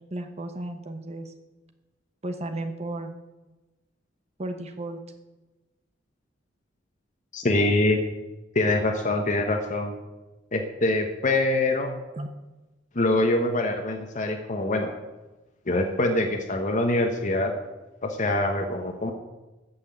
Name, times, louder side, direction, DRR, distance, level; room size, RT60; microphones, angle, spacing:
voice 1, 0.0-1.3 2.2-3.1 4.4-5.0 12.1-12.3, right 1 dB, 35° right, 7 dB, 1.0 m, -34 dB
voice 2, 7.3-8.0 8.5-9.9 10.5-11.9 12.9-14.9 15.7-17.5 18.0-19.1, left 2 dB, 40° left, 3 dB, 1.2 m, -24 dB
14.0 x 6.2 x 9.0 m, 1.1 s
head